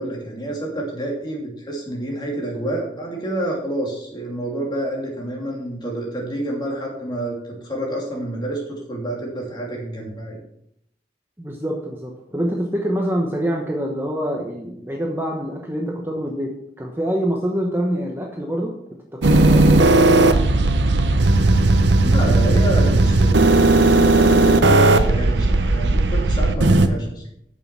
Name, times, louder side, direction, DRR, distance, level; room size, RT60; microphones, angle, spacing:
voice 1, 0.0-10.4 22.0-27.2, right 1 dB, 25° left, -2 dB, 2.7 m, -28 dB
voice 2, 11.4-18.7 19.2-20.4, equal, 15° right, 0 dB, 1.0 m, -25 dB
sound 1, 19.2-26.9, right 2 dB, 85° right, 0.8 m, -15 dB
8.8 x 6.9 x 6.0 m, 0.76 s
head